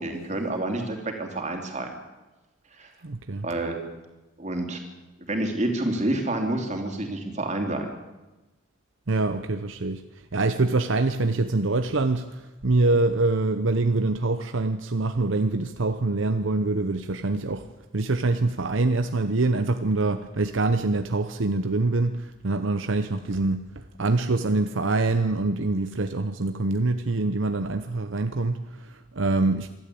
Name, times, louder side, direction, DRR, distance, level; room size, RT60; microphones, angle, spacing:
voice 1, 0.0-2.0 2.7-2.9 3.4-3.8 4.4-4.8 5.2-7.9, right 1 dB, 35° right, 3 dB, 3.1 m, -28 dB
voice 2, 3.0-3.5 9.1-10.0 10.3-17.7 17.9-29.7, right 2 dB, 70° right, 8 dB, 0.8 m, -25 dB
25.5 x 12.0 x 8.5 m, 1.1 s
head